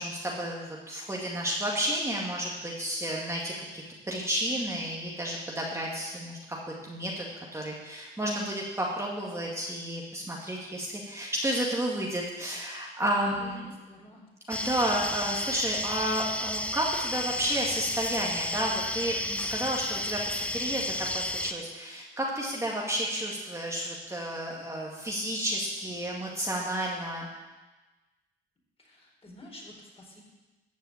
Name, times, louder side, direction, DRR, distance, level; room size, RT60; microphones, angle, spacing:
voice 1, 0.0-6.6 6.8-7.3 7.5-13.7 14.5-27.3, right 1 dB, 15° right, -3 dB, 2.1 m, -31 dB
voice 2, 13.4-14.2 28.8-30.2, equal, 30° left, -2 dB, 4.7 m, -49 dB
sound 1, 14.5-21.5, left 1 dB, 5° left, 0.7 m, -32 dB
14.5 x 5.5 x 8.8 m, 1.2 s
cardioid pair, 90°, 20 cm